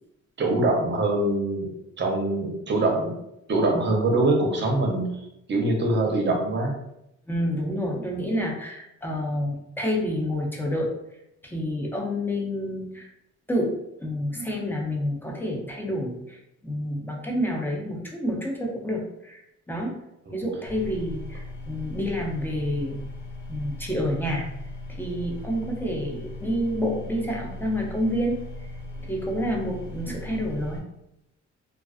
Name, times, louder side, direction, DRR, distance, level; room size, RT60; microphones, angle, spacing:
voice 1, 0.4-1.7 2.0-3.2 3.5-5.0 5.5-6.7 20.3-20.4, right 2 dB, 35° right, 1 dB, 0.7 m, -23 dB
voice 2, 7.3-10.9 11.4-13.1 13.5-19.9 20.3-23.0 23.5-24.5 25.0-28.4 29.0-30.8, equal, 5° left, 0 dB, 0.5 m, -28 dB
sound 1, 20.7-30.8, left 2 dB, 80° left, 0.9 m, -38 dB
2.3 x 2.3 x 2.4 m, 0.85 s
cardioid pair, 90°, 30 cm